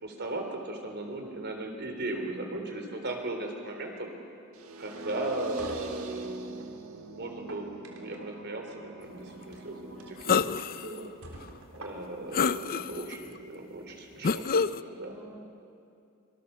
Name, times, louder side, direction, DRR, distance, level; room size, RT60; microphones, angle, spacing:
voice 1, 0.0-4.1 4.8-6.5 6.9-11.1 11.7-15.2, right 2 dB, 50° right, 3 dB, 3.6 m, -37 dB
voice 2, 1.2-1.8 9.8-10.2 14.9-15.5, right 1 dB, 10° right, -2 dB, 1.9 m, -50 dB
sound 1, 4.5-10.5, right 3 dB, 70° right, 1.6 m, -44 dB
sound 2, 5.5-6.7 7.3-8.4 9.4-9.6 10.0-10.1 10.6-10.7 11.2-12.3, right 2 dB, 85° right, 3.5 m, -47 dB
sound 3, 10.2-10.9 11.4-11.5 12.3-13.1 14.2-14.8, left 5 dB, 45° left, 0.5 m, -27 dB
26.0 x 23.5 x 7.0 m, 2.6 s
head